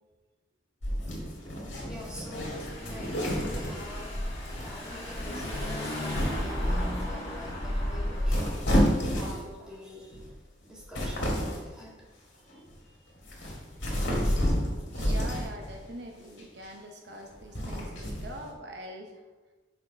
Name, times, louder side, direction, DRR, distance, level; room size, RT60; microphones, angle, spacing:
sound 1, 0.8-4.1 4.4-4.9 5.3-5.6 6.1-6.6 7.4-7.8 8.2-9.6 10.1-10.3 10.7-11.7 12.5-12.7 13.2-15.8 16.4-16.7 17.3-18.5, equal, 70° left, 2.1 m, -30 dB
voice 1, 1.6-4.1 4.6-8.7 8.9-10.2 10.6-11.9 12.8-13.1, left 1 dB, 5° right, -7 dB, 1.9 m, -45 dB
Car / Engine, 1.7-8.6, left 1 dB, 35° left, 1.6 m, -33 dB
voice 2, 14.9-19.2, right 1 dB, 60° right, 2 dB, 0.8 m, -43 dB
5.5 x 4.6 x 5.6 m, 1.2 s
head